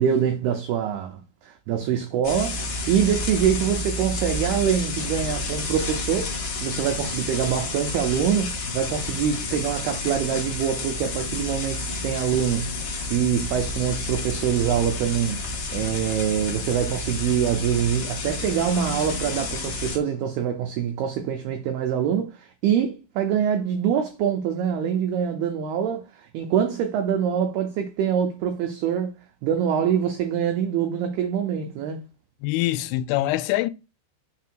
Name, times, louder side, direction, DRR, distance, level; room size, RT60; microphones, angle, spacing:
voice 1, 0.0-6.3 6.6-15.4 15.7-29.1 29.4-32.0, right 8 dB, 90° right, 2.2 m, -25 dB
sound 1, 2.2-20.0, left 2 dB, 60° left, 2.5 m, -30 dB
voice 2, 32.4-33.7, left 15 dB, 85° left, 2.9 m, -24 dB
6.8 x 3.5 x 4.5 m
omnidirectional pair, 5.5 m